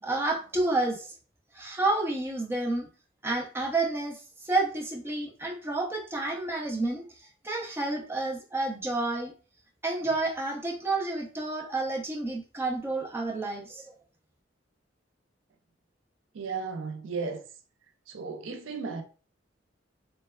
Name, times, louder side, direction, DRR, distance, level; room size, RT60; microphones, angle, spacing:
voice 1, 0.0-1.2 1.5-2.9 3.2-9.3 9.8-13.9, right 2 dB, 10° right, 0.5 m, -30 dB
voice 2, 16.3-17.4 18.1-19.0, right 4 dB, 85° right, 0.4 m, -34 dB
3.1 x 2.2 x 2.2 m
head